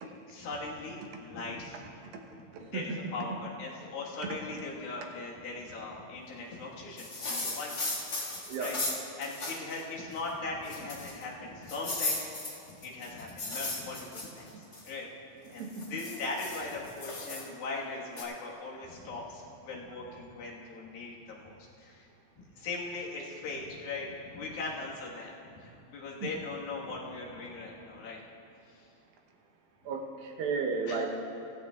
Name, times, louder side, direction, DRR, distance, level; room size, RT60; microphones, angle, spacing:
voice 1, 0.3-1.8 2.6-7.9 8.6-8.8 9.2-12.3 12.7-15.1 15.5-22.1 22.4-28.2 28.7-28.9 30.9-31.1, left 3 dB, 75° left, -4 dB, 3.3 m, -40 dB
voice 2, 2.5-2.9 8.5-8.8 14.5-14.7 15.4-16.0 26.2-26.3 29.9-31.1, right 5 dB, 80° right, 2 dB, 2.7 m, -34 dB
sound 1, 7.0-9.8 10.2-10.3 10.6-11.2 11.7-14.9 15.5-17.4 18.2-18.3, left 2 dB, 35° left, 1.8 m, -36 dB
17.0 x 15.0 x 2.4 m, 2.7 s
omnidirectional pair, 4.2 m